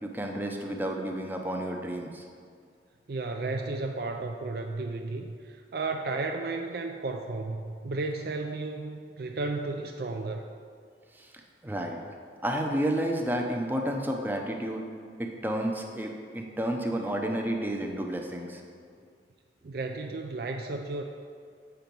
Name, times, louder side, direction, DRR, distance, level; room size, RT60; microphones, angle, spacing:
voice 1, 0.0-2.2 11.1-11.3 11.6-12.0 12.4-14.8 15.2-18.6, right 1 dB, 10° right, 2 dB, 0.6 m, -31 dB
voice 2, 3.1-10.5 19.6-21.0, right 3 dB, 55° right, 3 dB, 0.4 m, -33 dB
8.1 x 4.5 x 5.2 m, 2.2 s
head